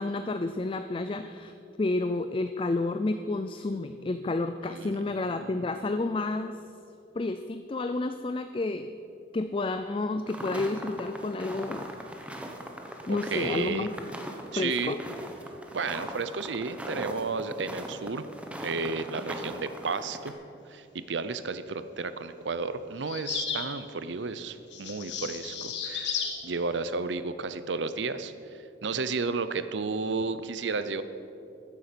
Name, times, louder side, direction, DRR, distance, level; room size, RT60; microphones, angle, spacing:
voice 1, 0.0-1.5 1.8-6.6 7.2-8.9 9.3-11.8 13.1-13.9 14.6-15.0, left 2 dB, 30° left, 9 dB, 0.4 m, -30 dB
voice 2, 4.6-5.0 5.3-5.5 13.1-13.9 14.5-15.0 15.7-18.2 18.6-20.3 20.7-31.0, right 4 dB, 85° right, 12 dB, 0.7 m, -32 dB
sound 1, 10.3-20.3, right 1 dB, 5° right, 1.1 m, -40 dB
sound 2, 23.0-23.7 24.7-26.4, left 6 dB, 80° left, 1.8 m, -33 dB
14.0 x 9.7 x 6.8 m, 2.7 s
head